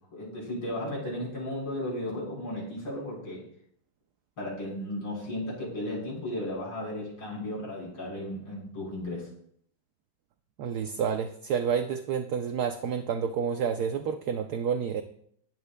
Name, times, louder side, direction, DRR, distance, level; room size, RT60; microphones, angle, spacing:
voice 1, 0.1-3.4 4.4-9.3, left 1 dB, 85° left, -4 dB, 5.3 m, -35 dB
voice 2, 10.6-15.0, right 7 dB, 65° right, 7 dB, 1.0 m, -29 dB
21.5 x 11.5 x 2.2 m, 0.67 s
omnidirectional pair, 2.2 m